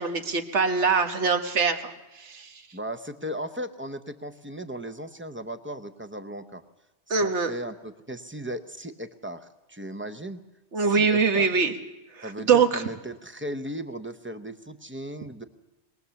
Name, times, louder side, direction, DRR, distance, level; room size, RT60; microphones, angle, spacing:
voice 1, 0.0-2.6 7.1-7.5 10.7-11.7 12.1-12.8, right 5 dB, 85° right, 6 dB, 1.6 m, -23 dB
voice 2, 2.7-6.6 7.1-10.4 10.8-11.5 12.2-15.4, equal, 10° right, 9 dB, 0.7 m, -36 dB
22.0 x 19.5 x 7.0 m, 1.0 s
omnidirectional pair, 1.2 m